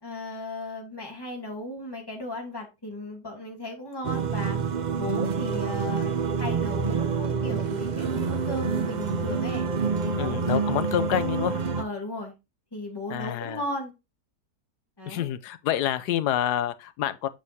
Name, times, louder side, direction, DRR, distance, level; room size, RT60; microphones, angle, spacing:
voice 1, 0.0-4.6 5.0-6.1 6.4-9.7 10.0-10.6 11.8-12.3 12.7-13.9 15.0-15.3, left 1 dB, 15° left, 2.3 m, -36 dB
sound 1, 4.0-11.8, right 5 dB, 50° right, 0.5 m, -27 dB
voice 2, 10.2-11.6 13.1-13.6 15.1-17.3, left 11 dB, 85° left, 1.2 m, -27 dB
7.8 x 6.3 x 2.8 m
omnidirectional pair, 1.7 m